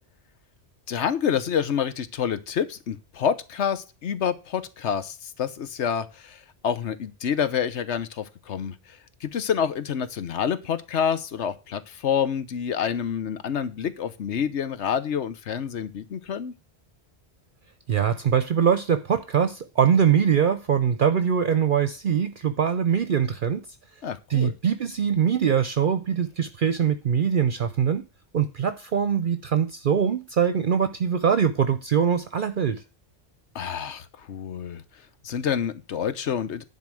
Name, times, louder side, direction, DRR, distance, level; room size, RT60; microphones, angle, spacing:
voice 1, 0.9-16.5 24.0-24.5 33.5-34.8 35.2-36.6, left 8 dB, 85° left, 13 dB, 1.2 m, -28 dB
voice 2, 17.9-23.6 24.3-28.0 28.3-32.8, right 7 dB, 55° right, 10 dB, 0.8 m, -22 dB
10.5 x 4.2 x 7.6 m, 0.30 s
omnidirectional pair, 1.2 m